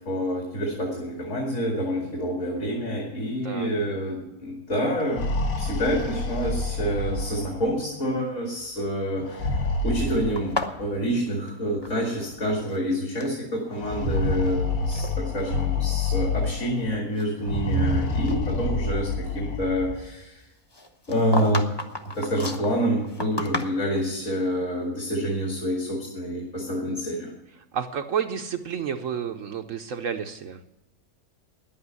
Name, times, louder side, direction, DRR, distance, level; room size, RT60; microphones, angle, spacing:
voice 1, 0.0-5.3 5.6-20.4 21.1-21.7 22.1-27.3, equal, 50° left, -1 dB, 2.7 m, -27 dB
sound 1, 4.9-7.8 9.2-10.9 11.9-12.0 12.3-12.4 13.7-16.8 17.4-20.0, left 2 dB, 65° left, 1.5 m, -28 dB
sound 2, 10.4-12.4 12.6-13.4 14.0-14.6 14.9-15.1 15.8-15.9 16.4-18.0 18.3-18.4 20.7-24.1, left 1 dB, 20° left, 0.9 m, -33 dB
voice 2, 27.7-30.6, right 7 dB, 65° right, 6 dB, 1.0 m, -30 dB
10.5 x 8.7 x 9.5 m, 0.93 s
omnidirectional pair, 1.7 m